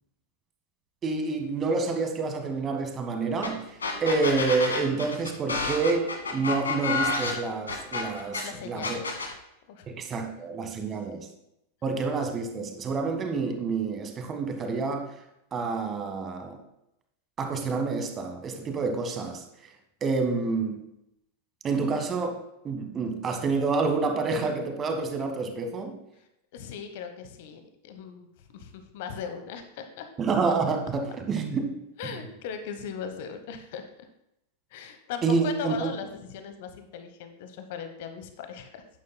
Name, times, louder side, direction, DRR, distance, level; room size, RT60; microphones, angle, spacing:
voice 1, 1.0-3.6 4.0-9.0 9.9-11.3 11.8-15.1 15.5-16.6 17.4-19.4 20.0-20.8 21.6-26.0 30.2-32.1 35.2-35.9, right 4 dB, 25° right, 5 dB, 1.6 m, -28 dB
sound 1, 3.4-3.5 3.8-8.4 8.8-9.3, left 4 dB, 75° left, 1.5 m, -29 dB
voice 2, 8.4-9.1 9.7-9.9 10.8-11.2 26.5-30.1 32.0-33.8 34.7-38.8, left 7 dB, 50° left, 8 dB, 1.1 m, -38 dB
12.0 x 9.4 x 2.2 m, 0.83 s
figure-of-eight pair, 90°, 0 cm